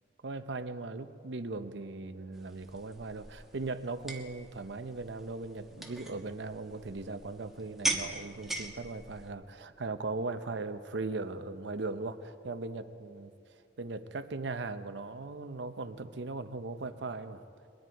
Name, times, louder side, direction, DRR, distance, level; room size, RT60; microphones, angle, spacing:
voice 1, 0.2-13.3 13.8-17.4, right 3 dB, 75° right, 10 dB, 0.7 m, -38 dB
sound 1, 2.3-9.3, right 2 dB, ahead, 1.2 m, -40 dB
22.0 x 10.0 x 4.6 m, 2.3 s
head